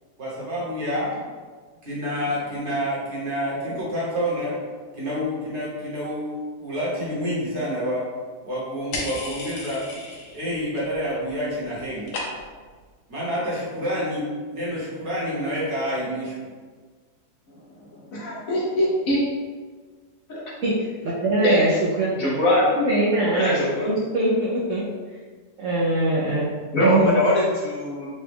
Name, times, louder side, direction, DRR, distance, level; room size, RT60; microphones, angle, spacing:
voice 1, 0.2-1.1 1.8-4.6 4.9-8.0 8.4-9.9 10.3-12.1 13.1-16.3, equal, 50° right, -7 dB, 1.3 m, -28 dB
sound 1, 8.9-10.5 10.8-11.3 11.6-12.7, left 2 dB, 90° left, 1.3 m, -34 dB
voice 2, 18.1-19.2 20.3-20.4 21.4-21.6 22.2-22.7 23.4-23.5 23.8-23.9 26.7-28.1, left 1 dB, 65° left, -5 dB, 1.1 m, -21 dB
voice 3, 20.6-22.4 22.7-24.8 25.6-26.5 26.8-27.2, right 2 dB, 65° right, -6 dB, 0.8 m, -23 dB
4.0 x 2.2 x 3.3 m, 1.5 s
omnidirectional pair, 1.7 m